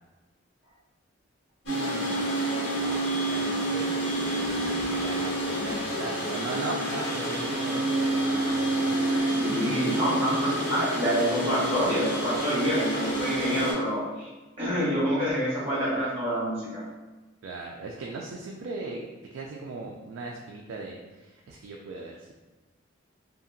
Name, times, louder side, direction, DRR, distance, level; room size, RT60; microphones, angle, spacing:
sound 1, 1.7-13.7, right 1 dB, 90° left, 1.2 m, -28 dB
voice 1, 1.7-2.3 2.7-4.0 4.3-9.1 9.7-10.3 17.4-19.0 19.3-22.3, right 3 dB, 75° right, -1 dB, 0.3 m, -39 dB
voice 2, 9.3-14.3 14.6-16.8, equal, 30° right, -9 dB, 1.4 m, -27 dB
2.8 x 2.4 x 2.5 m, 1.2 s
head